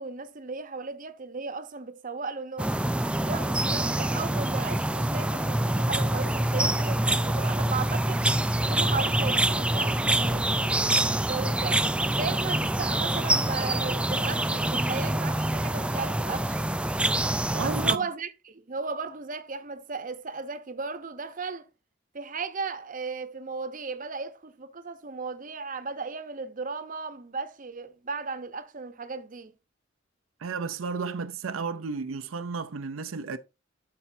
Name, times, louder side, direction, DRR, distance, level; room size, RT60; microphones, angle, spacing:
voice 1, 0.0-2.7 3.3-8.2 8.6-16.7 17.6-21.7 22.1-29.5, right 4 dB, 45° right, 0.8 m, -36 dB
sound 1, 2.6-18.0, right 1 dB, 5° right, 0.3 m, -26 dB
voice 2, 17.5-18.0 30.4-33.4, right 4 dB, 85° right, 0.6 m, -33 dB
12.5 x 4.4 x 2.7 m
head